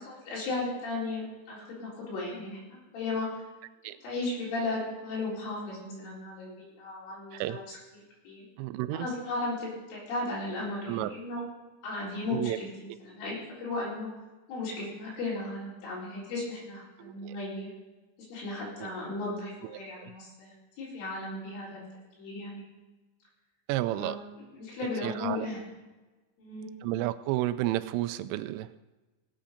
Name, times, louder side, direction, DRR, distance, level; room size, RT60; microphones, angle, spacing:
voice 1, 0.0-3.3 4.0-8.5 8.9-11.4 11.8-14.1 14.5-17.7 18.3-20.5 20.8-21.9 22.2-22.6 23.9-24.2 24.5-25.6 26.4-26.7, left 2 dB, 75° left, -5 dB, 6.5 m, -36 dB
voice 2, 8.6-9.1 10.9-11.1 12.3-12.6 17.0-17.4 18.8-19.0 20.0-20.1 23.7-24.2 25.0-25.5 26.8-28.8, right 15 dB, 85° right, 11 dB, 3.1 m, -31 dB
18.0 x 8.5 x 5.1 m, 1.2 s
omnidirectional pair, 5.6 m